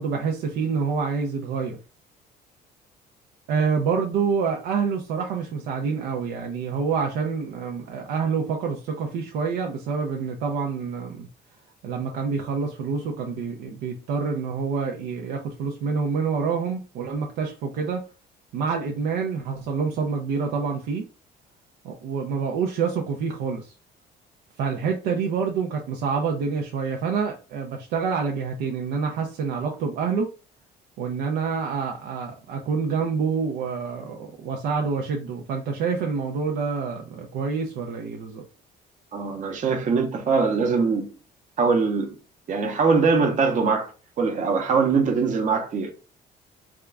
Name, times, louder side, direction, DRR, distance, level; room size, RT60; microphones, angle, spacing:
voice 1, 0.0-1.8 3.5-11.3 11.8-18.0 18.5-21.1 21.8-23.7 24.6-30.3 31.0-38.5, right 5 dB, 85° right, 0.6 m, -27 dB
voice 2, 39.1-41.1 41.6-42.2 42.5-43.9 44.2-45.9, right 5 dB, 50° right, 0.8 m, -22 dB
3.5 x 2.4 x 3.3 m
cardioid pair, 110°, 17 cm